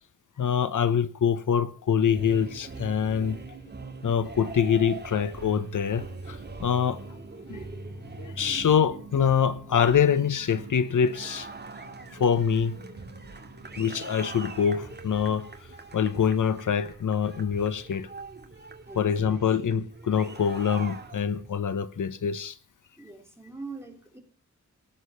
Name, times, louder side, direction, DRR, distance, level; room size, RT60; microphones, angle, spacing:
voice 1, 0.4-3.4 4.0-7.0 7.5-7.6 8.2-11.5 12.2-12.8 13.8-15.4 15.9-18.1 19.0-22.5, left 7 dB, 85° left, 1.1 m, -25 dB
sound 1, 2.0-21.6, right 3 dB, 35° right, 2.3 m, -42 dB
Singing, 6.9-15.8, right 2 dB, 65° right, 3.3 m, -50 dB
voice 2, 18.9-19.5 23.0-24.2, right 3 dB, 10° right, 3.8 m, -43 dB
18.0 x 7.6 x 8.3 m
wide cardioid pair, 170°, 30 cm